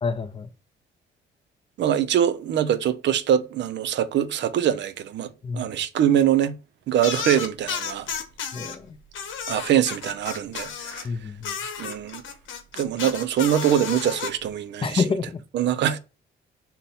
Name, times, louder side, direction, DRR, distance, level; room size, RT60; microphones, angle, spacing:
voice 1, 0.0-0.5 5.4-5.7 8.5-8.8 11.0-11.5 14.8-15.4, left 5 dB, 25° left, 0.4 m, -27 dB
voice 2, 1.8-6.5 6.9-8.1 9.5-11.1 11.8-12.2 12.8-15.0 15.5-16.0, right 10 dB, 65° right, 0.5 m, -23 dB
sound 1, 7.0-8.8 9.1-11.1 11.4-14.3, left 6 dB, 75° left, 0.8 m, -32 dB
5.4 x 2.1 x 4.0 m
cardioid pair, 90°, 20 cm